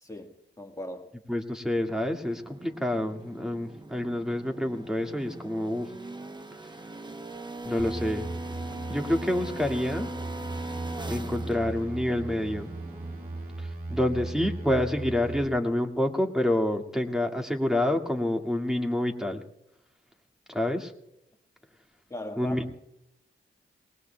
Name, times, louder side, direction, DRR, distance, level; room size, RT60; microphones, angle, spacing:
voice 1, 0.0-1.1 22.1-22.6, left 1 dB, 15° left, 2 dB, 1.6 m, -39 dB
voice 2, 1.3-5.9 7.6-8.3 8.9-10.1 11.1-12.7 13.6-19.4 20.5-20.9 22.4-22.7, left 1 dB, 5° right, 3 dB, 2.0 m, -28 dB
sound 1, 1.9-13.7, right 2 dB, 20° right, 0.9 m, -42 dB
sound 2, 7.8-15.5, right 2 dB, 90° right, 2.2 m, -37 dB
Bowed string instrument, 8.0-12.1, left 4 dB, 80° left, 1.4 m, -49 dB
27.5 x 20.0 x 2.3 m, 0.83 s
cardioid pair, 65°, 21 cm